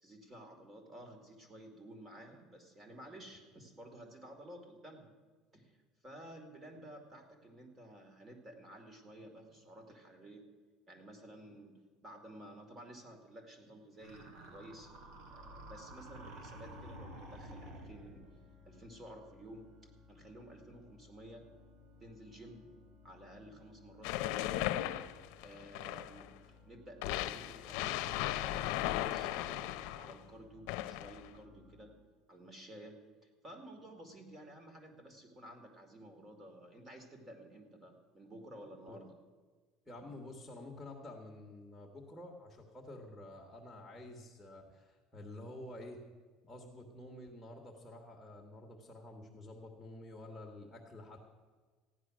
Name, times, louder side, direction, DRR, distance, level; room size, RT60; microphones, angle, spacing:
voice 1, 0.0-5.1 5.5-5.8 6.0-10.4 10.9-14.9 15.3-18.2 18.6-19.7 20.1-21.5 22.0-22.7 23.0-24.8 25.4-26.3 26.7-31.9 32.3-39.1, right 1 dB, 20° right, 4 dB, 2.3 m, -53 dB
sound 1, 14.0-18.3, right 1 dB, 65° right, 2.4 m, -50 dB
sound 2, 16.1-31.9, left 4 dB, 90° right, 2.9 m, -61 dB
sound 3, 24.0-26.3 27.0-30.2 30.7-31.3, left 14 dB, 80° left, 0.6 m, -36 dB
voice 2, 39.9-46.0 46.5-51.2, left 1 dB, 5° left, 0 dB, 1.5 m, -50 dB
15.5 x 10.0 x 6.2 m, 1.4 s
cardioid pair, 150°, 0 cm